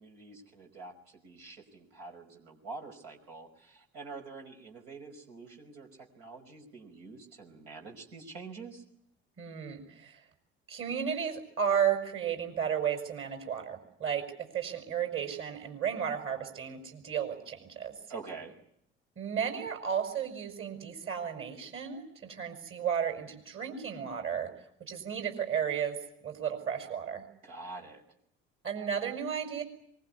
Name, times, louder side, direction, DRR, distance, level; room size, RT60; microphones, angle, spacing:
voice 1, 0.0-5.9 6.2-8.8 18.1-18.6 27.4-28.0, right 4 dB, 70° right, 1 dB, 5.4 m, -46 dB
voice 2, 9.4-10.2 10.7-14.2 14.5-17.9 19.2-24.5 24.9-26.0 26.2-27.2 28.6-29.6, right 8 dB, 40° right, 5 dB, 5.6 m, -33 dB
24.0 x 22.0 x 9.7 m, 0.71 s
hypercardioid pair, 60°, 32 cm